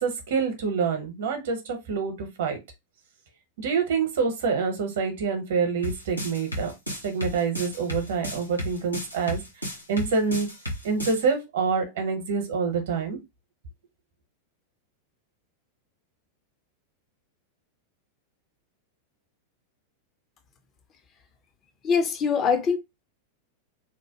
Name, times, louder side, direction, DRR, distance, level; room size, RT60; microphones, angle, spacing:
voice 1, 0.0-2.6 3.6-6.7 7.0-9.4 9.9-10.5 10.8-13.2, right 5 dB, 60° right, 0.8 m, -26 dB
sound 1, 5.8-11.2, equal, 85° left, 0.8 m, -32 dB
voice 2, 21.8-22.8, left 5 dB, 30° left, 0.5 m, -23 dB
2.8 x 2.1 x 2.8 m
figure-of-eight pair, 90°, 0 cm